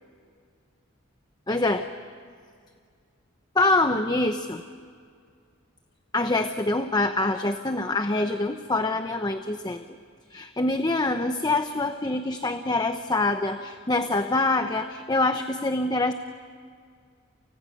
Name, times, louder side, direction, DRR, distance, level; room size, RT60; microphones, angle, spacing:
voice 1, 1.5-1.8 3.5-4.6 6.1-9.8 10.3-16.1, left 2 dB, 20° left, 8 dB, 0.9 m, -25 dB
29.5 x 29.0 x 6.7 m, 2.2 s
head